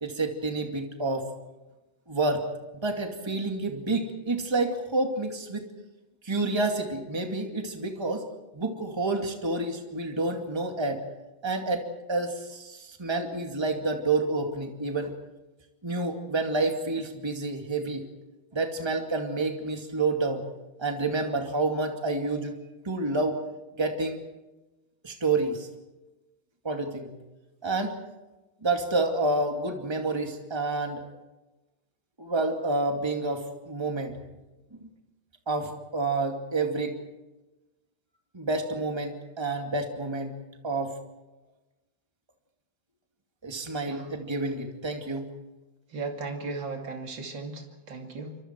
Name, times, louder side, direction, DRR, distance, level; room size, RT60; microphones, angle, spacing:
voice 1, 0.0-1.2 2.1-2.4 2.7-5.7 6.2-8.2 8.5-11.0 11.4-11.8 12.1-15.1 15.8-18.1 18.5-20.4 20.8-22.6 22.8-23.4 23.8-24.2 25.0-25.7 26.6-27.1 27.6-27.9 28.6-31.0 32.2-34.2 34.7-34.9 35.5-37.0 38.3-40.3 40.6-40.9 43.4-45.3, right 3 dB, 10° right, 3 dB, 2.2 m, -29 dB
voice 2, 45.9-48.4, right 3 dB, 60° right, 3 dB, 3.3 m, -36 dB
28.5 x 25.0 x 4.6 m, 1.1 s
omnidirectional pair, 2.3 m